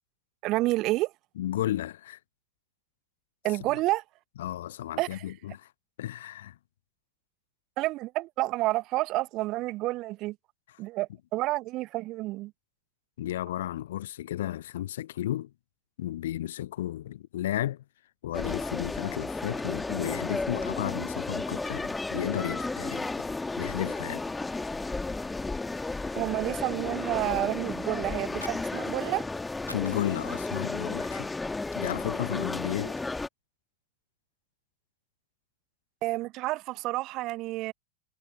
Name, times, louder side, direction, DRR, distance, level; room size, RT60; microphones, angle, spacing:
voice 1, 0.4-1.1 3.4-4.0 5.0-5.2 7.8-10.4 10.8-12.5 26.1-29.3 36.0-37.7, right 19 dB, 40° right, 0.9 m, -29 dB
voice 2, 1.4-2.2 4.4-5.7 6.0-6.6 13.2-15.5 16.0-17.8 18.2-23.3 23.6-24.2 29.7-31.3 31.8-33.0, left 13 dB, 60° left, 0.7 m, -33 dB
sound 1, 18.3-33.3, left 3 dB, 10° left, 1.6 m, -33 dB
Fire, 28.1-29.3 29.5-30.9 31.3-31.5 31.9-32.8, left 2 dB, 85° left, 2.0 m, -47 dB
figure-of-eight pair, 90°, 0 cm